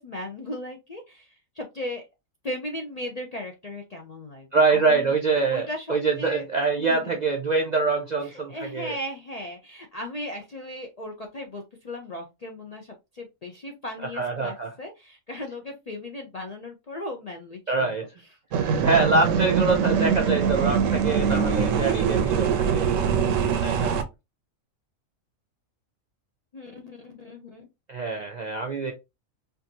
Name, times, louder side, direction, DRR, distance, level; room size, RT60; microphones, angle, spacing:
voice 1, 0.0-2.0 2.4-5.1 5.5-6.4 6.8-7.1 8.2-17.9 26.5-27.7, left 1 dB, 45° left, 0.5 m, -37 dB
voice 2, 4.5-9.0 14.1-14.7 17.7-18.1 18.6-23.0 23.6-24.0 27.9-28.9, right 3 dB, 55° right, 0.5 m, -25 dB
sound 1, 18.5-24.0, right 7 dB, 75° right, 1.0 m, -23 dB
4.5 x 2.5 x 2.7 m
omnidirectional pair, 1.4 m